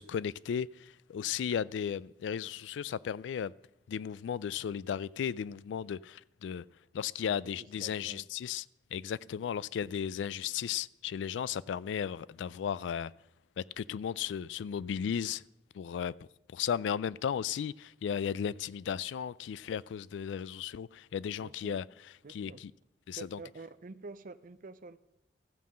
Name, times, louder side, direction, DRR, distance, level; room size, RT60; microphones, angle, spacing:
voice 1, 0.0-3.5 3.9-6.6 6.9-8.6 8.9-13.1 13.6-15.4 15.7-16.1 16.5-21.8 22.3-22.7 23.1-23.4, left 8 dB, 85° left, 0.3 m, -35 dB
voice 2, 7.2-8.3 21.4-21.8 22.2-22.6 23.1-25.0, right 3 dB, 50° right, 0.5 m, -48 dB
14.0 x 5.5 x 7.5 m
head